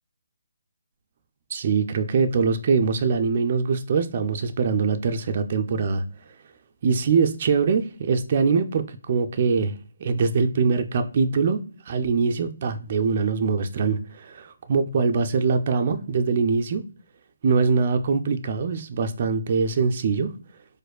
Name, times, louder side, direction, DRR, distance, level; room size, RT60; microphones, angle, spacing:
voice 1, 1.5-6.0 6.8-16.8 17.4-20.3, right 5 dB, 40° right, 0.4 m, -23 dB
4.1 x 2.5 x 2.3 m
figure-of-eight pair, 155°, 0 cm